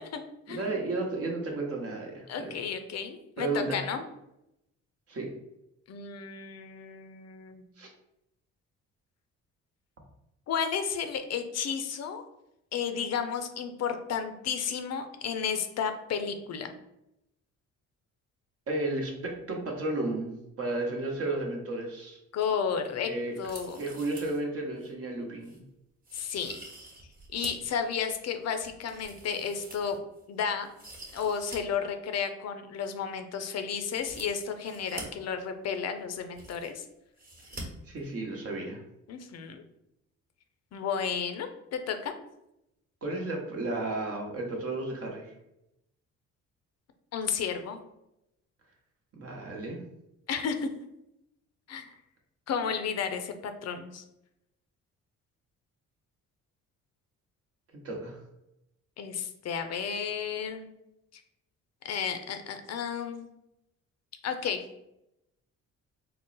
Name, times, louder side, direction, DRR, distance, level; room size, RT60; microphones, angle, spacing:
voice 1, 0.5-2.6 3.4-3.8 5.1-5.3 7.8-7.9 18.7-22.2 23.0-23.4 23.8-25.6 37.9-38.8 43.0-45.3 49.1-49.8 57.8-58.2, right 2 dB, 50° right, 1 dB, 1.0 m, -33 dB
voice 2, 2.3-4.0 5.9-7.7 10.5-12.2 12.7-16.7 22.3-23.1 23.4-23.8 26.1-26.6 27.3-30.0 30.3-30.7 31.1-36.8 39.1-39.6 40.7-42.1 47.1-47.8 50.3-50.7 51.7-51.9 52.5-54.0 59.0-60.7 61.8-63.3 64.2-64.6, left 7 dB, 60° left, 8 dB, 0.5 m, -32 dB
sound 1, 23.3-24.4 24.8-24.9 25.4-25.6 26.0-27.7 28.1-30.2 30.6-31.6 31.9-32.0 33.9-35.0 35.8-35.9 36.1-36.8 37.2-37.6 37.9-38.0, right 2 dB, 30° right, 1.1 m, -46 dB
3.8 x 2.0 x 3.9 m, 0.85 s
cardioid pair, 90°, 30 cm